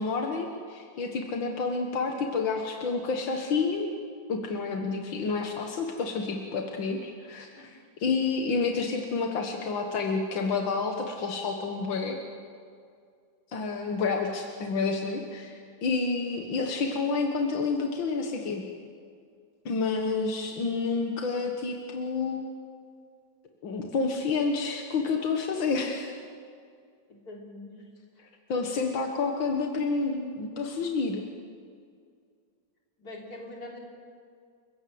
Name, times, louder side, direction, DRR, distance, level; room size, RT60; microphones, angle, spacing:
voice 1, 0.0-3.9 4.3-12.2 13.5-18.7 19.7-22.5 23.6-26.1 28.5-31.2, left 4 dB, 85° left, 3 dB, 2.3 m, -29 dB
voice 2, 27.3-27.7 33.0-33.8, left 2 dB, 55° left, 0 dB, 4.2 m, -43 dB
29.5 x 16.5 x 7.9 m, 2.2 s
omnidirectional pair, 2.0 m